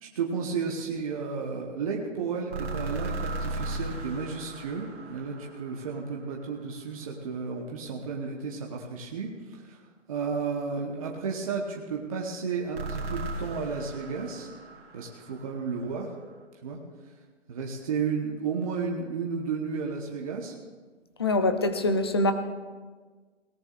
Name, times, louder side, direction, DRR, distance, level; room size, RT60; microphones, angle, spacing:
voice 1, 0.0-9.8 10.1-14.5 14.9-16.1 16.6-16.8 17.5-20.5, right 5 dB, 30° right, -1 dB, 1.1 m, -33 dB
sound 1, 2.5-6.6 12.7-15.9, right 2 dB, 55° right, 2.9 m, -36 dB
voice 2, 21.2-22.3, left 2 dB, 20° left, 8 dB, 0.5 m, -24 dB
22.5 x 17.5 x 2.5 m, 1.4 s
hypercardioid pair, 160°, 37 cm